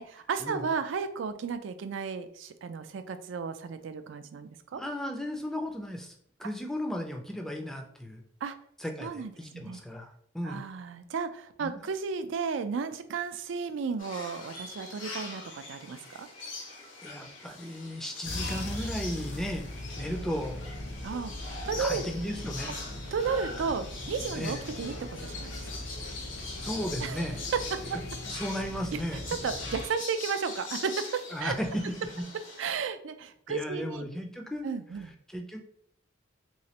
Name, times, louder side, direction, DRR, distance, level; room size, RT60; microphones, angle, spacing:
voice 1, 0.0-4.8 8.4-8.5 9.0-9.8 10.4-16.3 21.0-21.3 21.6-22.0 23.1-25.5 27.0-27.3 27.5-28.0 28.9-29.0 29.3-31.6 32.6-34.0 34.6-35.1, right 5 dB, 70° right, 10 dB, 0.4 m, -33 dB
voice 2, 4.8-6.1 6.4-8.2 8.8-10.6 11.6-11.9 17.0-19.7 20.0-20.6 21.8-22.7 24.4-24.6 26.6-27.4 28.3-29.3 31.3-31.8 32.2-32.3 33.5-34.6 35.3-35.6, equal, ahead, 2 dB, 0.4 m, -35 dB
sound 1, 14.0-32.7, left 3 dB, 85° left, 0.9 m, -42 dB
sound 2, 18.2-29.9, left 1 dB, 60° left, 0.8 m, -40 dB
3.2 x 3.1 x 2.8 m, 0.68 s
head